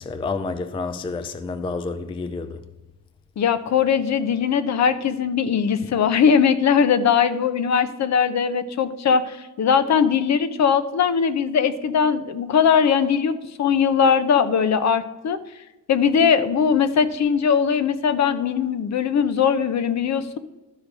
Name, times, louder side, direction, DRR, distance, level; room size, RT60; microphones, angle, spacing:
voice 1, 0.0-2.6, left 3 dB, 15° left, 0.3 m, -29 dB
voice 2, 3.4-15.4 15.9-20.4, left 7 dB, 50° left, 0.7 m, -20 dB
12.0 x 5.0 x 6.1 m
wide cardioid pair, 175°, 34 cm